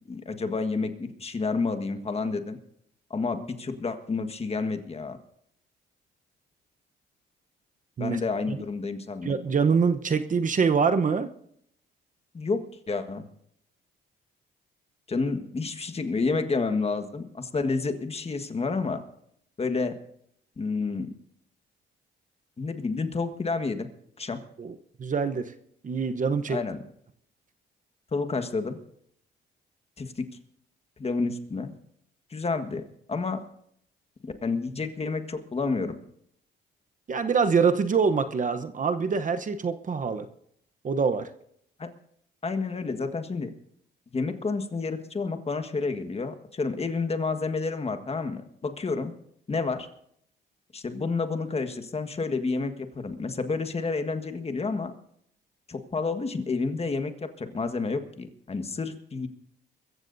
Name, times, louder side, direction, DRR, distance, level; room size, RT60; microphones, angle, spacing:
voice 1, 0.1-2.6 3.1-5.2 8.0-9.3 12.3-13.2 15.1-19.0 19.6-20.0 20.6-21.1 22.6-23.9 24.2-24.4 26.5-26.8 28.1-28.8 30.0-30.2 31.0-31.7 32.3-33.4 34.2-36.0 41.8-41.9 42.4-43.5 44.1-49.1 49.5-49.9 50.7-54.9 55.7-59.3, left 4 dB, 30° left, 7 dB, 1.6 m, -30 dB
voice 2, 9.2-11.3 24.6-25.5 25.8-26.6 37.1-40.3 40.8-41.3, right 5 dB, 40° right, 9 dB, 0.9 m, -25 dB
22.5 x 14.5 x 2.7 m, 0.69 s
cardioid pair, 90°, 20 cm